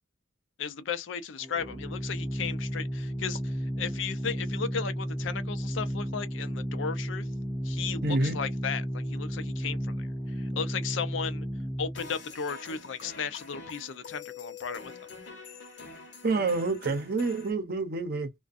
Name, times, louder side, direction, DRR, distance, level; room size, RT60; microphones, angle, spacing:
voice 1, 0.6-7.3 7.6-11.5 11.8-14.9, left 6 dB, 80° left, 0.5 m, -35 dB
Organ, 1.4-12.1, equal, 10° right, 0.5 m, -33 dB
voice 2, 8.0-8.4 16.2-18.3, right 3 dB, 50° right, 0.6 m, -28 dB
sound 1, 12.0-17.5, left 5 dB, 65° left, 0.9 m, -45 dB
2.4 x 2.2 x 2.4 m
head